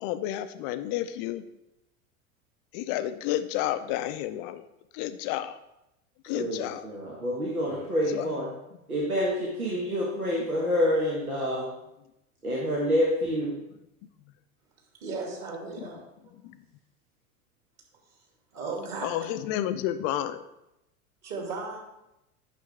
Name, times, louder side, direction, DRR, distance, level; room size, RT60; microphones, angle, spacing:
voice 1, 0.0-1.4 2.7-4.7 4.9-5.6 6.2-6.9 8.1-8.6 15.8-15.9 16.4-16.6 19.0-20.4, left 12 dB, 30° left, 11 dB, 0.4 m, -31 dB
voice 2, 6.3-8.4 8.9-11.6 12.4-13.5, equal, 85° right, -3 dB, 1.4 m, -27 dB
voice 3, 15.0-16.3 18.5-19.1 21.2-21.8, right 3 dB, 35° right, 0 dB, 2.5 m, -36 dB
9.1 x 6.2 x 3.4 m, 0.88 s
figure-of-eight pair, 85°, 43 cm